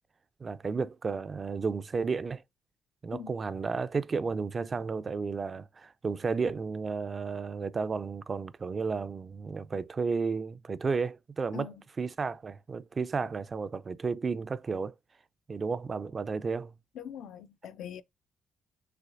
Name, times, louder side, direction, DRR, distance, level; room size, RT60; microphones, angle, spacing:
voice 1, 0.4-2.4 3.0-11.7 12.0-14.9 15.5-16.7, right 4 dB, 35° right, 0.4 m, -32 dB
voice 2, 16.9-18.0, left 8 dB, 75° left, 0.5 m, -42 dB
5.7 x 3.1 x 2.5 m
cardioid pair, 90°, 0 cm